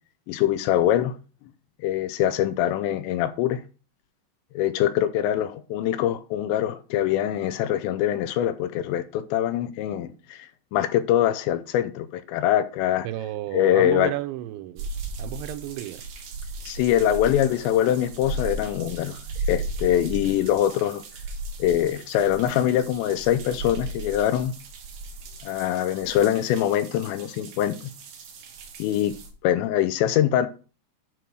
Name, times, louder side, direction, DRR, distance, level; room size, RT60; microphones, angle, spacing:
voice 1, 0.3-1.1 1.8-3.6 4.5-10.5 10.7-13.1 13.5-14.1 16.6-19.2 19.5-21.0 21.6-24.5 25.4-27.9 28.8-29.1 29.4-30.5, left 11 dB, 85° left, 2.9 m, -23 dB
voice 2, 13.0-14.9 15.2-16.0, right 14 dB, 90° right, 3.0 m, -32 dB
sound 1, 14.8-29.3, right 2 dB, 60° right, 3.1 m, -36 dB
9.5 x 3.9 x 6.2 m
omnidirectional pair, 5.1 m